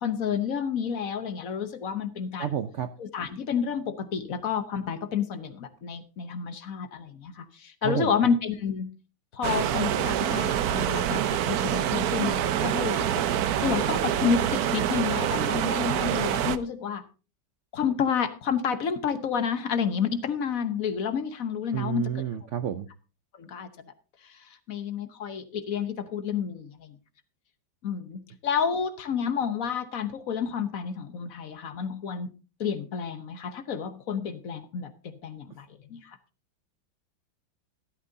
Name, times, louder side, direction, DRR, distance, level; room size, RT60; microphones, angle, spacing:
voice 1, 0.0-2.6 3.0-8.9 9.3-13.2 13.6-17.0 17.7-22.2 23.4-23.9 24.2-24.4 24.7-27.0 27.8-32.3 32.6-36.2, left 7 dB, 50° left, 11 dB, 1.2 m, -30 dB
voice 2, 2.4-2.9 7.8-8.1 21.7-22.9, right 9 dB, 90° right, 10 dB, 0.6 m, -30 dB
sound 1, 9.4-16.6, right 10 dB, 65° right, 1.0 m, -26 dB
14.5 x 12.5 x 2.7 m, 0.33 s
omnidirectional pair, 2.1 m